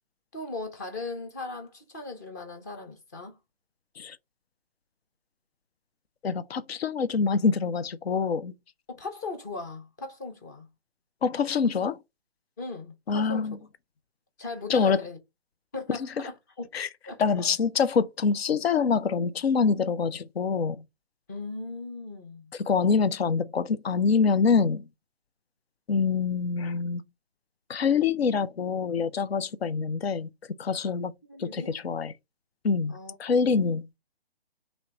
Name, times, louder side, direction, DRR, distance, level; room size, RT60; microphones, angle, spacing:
voice 1, 0.3-3.4 8.9-10.7 12.6-13.6 14.4-15.2 15.7-16.7 17.1-17.4 21.3-22.5 31.2-31.8 32.9-33.2 33.4-33.7, left 3 dB, 15° left, 0.6 m, -38 dB
voice 2, 6.2-8.5 11.2-12.0 13.1-13.6 14.7-15.0 16.7-16.9 17.2-20.8 22.6-24.8 25.9-27.0 27.7-30.3 30.6-31.1 31.4-32.1 32.6-32.9 33.2-33.9, left 5 dB, 70° left, 0.6 m, -25 dB
3.1 x 3.0 x 4.6 m
figure-of-eight pair, 140°, 32 cm